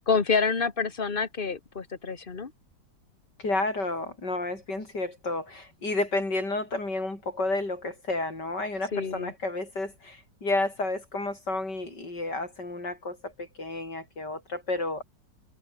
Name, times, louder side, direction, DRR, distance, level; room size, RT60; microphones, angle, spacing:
voice 1, 0.1-2.5 8.9-9.3, left 5 dB, 30° left, 1.7 m, -27 dB
voice 2, 3.4-15.0, left 2 dB, 70° left, 7.3 m, -31 dB
omnidirectional pair, 1.9 m